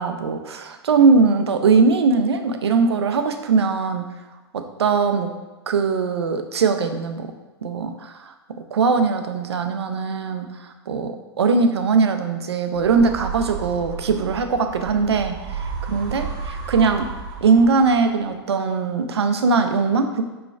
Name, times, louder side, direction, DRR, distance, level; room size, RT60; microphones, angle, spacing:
voice 1, 0.0-4.0 4.5-5.3 5.7-7.3 7.6-8.1 8.7-10.5 10.9-15.4 15.9-16.3 16.7-17.1 17.4-20.2, right 4 dB, 75° right, 7 dB, 0.4 m, -20 dB
sound 1, 12.7-18.1, right 5 dB, 30° right, 0.6 m, -32 dB
3.1 x 2.3 x 4.1 m, 1.1 s
figure-of-eight pair, 105°, 14 cm